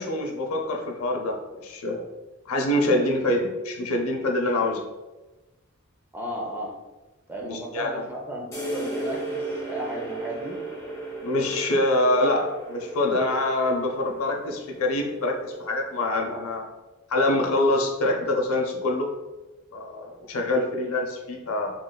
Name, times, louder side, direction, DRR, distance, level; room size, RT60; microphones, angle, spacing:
voice 1, 0.0-2.0 2.5-4.8 7.4-7.9 11.2-16.6 17.1-19.1 19.7-21.7, left 1 dB, 75° left, 2 dB, 0.6 m, -25 dB
voice 2, 6.1-6.8 7.3-10.6, right 1 dB, 10° right, -1 dB, 0.4 m, -34 dB
sound 1, 8.5-16.0, right 2 dB, 15° left, 1.0 m, -36 dB
3.7 x 3.0 x 2.2 m, 1.1 s
head